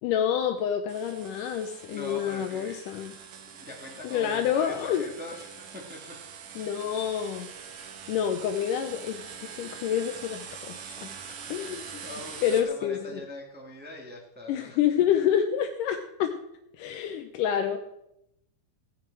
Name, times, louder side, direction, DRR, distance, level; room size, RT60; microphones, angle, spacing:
voice 1, 0.0-3.1 4.0-5.0 6.6-7.5 8.1-11.1 11.5-12.0 12.4-13.2 14.5-16.3 16.8-17.8, left 9 dB, 85° left, 5 dB, 2.3 m, -28 dB
sound 1, 0.9-12.6, right 7 dB, 75° right, 2.7 m, -44 dB
voice 2, 1.9-2.8 3.5-6.1 10.1-10.2 11.3-11.7 12.0-14.8, left 1 dB, 5° right, 0 dB, 1.3 m, -42 dB
15.5 x 9.9 x 4.7 m, 0.82 s
omnidirectional pair, 3.7 m